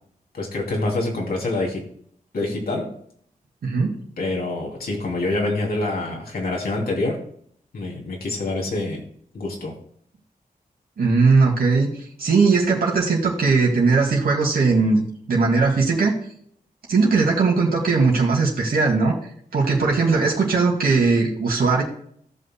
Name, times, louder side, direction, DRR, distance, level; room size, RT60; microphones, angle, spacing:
voice 1, 0.3-1.8 2.3-2.9 4.2-7.2 7.7-9.0 9.3-9.7, left 2 dB, 80° left, -1 dB, 2.8 m, -26 dB
voice 2, 3.6-3.9 11.0-16.1 16.9-19.2 19.5-21.8, right 4 dB, 85° right, -1 dB, 2.2 m, -19 dB
16.5 x 5.8 x 2.2 m, 0.63 s
wide cardioid pair, 110°, 15 cm